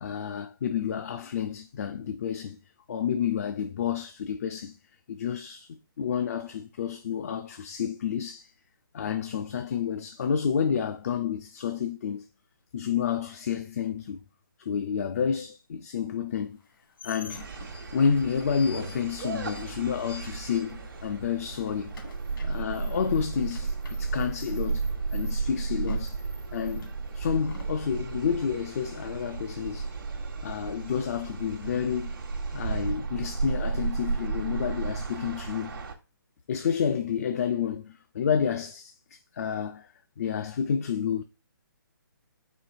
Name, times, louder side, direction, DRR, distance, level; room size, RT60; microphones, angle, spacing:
voice 1, 0.0-2.6 2.9-4.8 5.1-5.7 6.0-8.5 8.9-12.3 12.7-14.2 14.6-16.6 17.0-17.5 17.9-21.9 22.4-26.2 26.5-29.9 30.4-32.2 32.5-35.8 36.5-41.2, left 7 dB, 45° left, 0.3 m, -30 dB
sound 1, 16.5-21.1 21.4-27.8, left 3 dB, 80° left, 1.8 m, -49 dB
sound 2, 17.3-35.9, right 4 dB, 75° right, 1.1 m, -34 dB
4.4 x 4.2 x 2.6 m
hypercardioid pair, 155°, 12 cm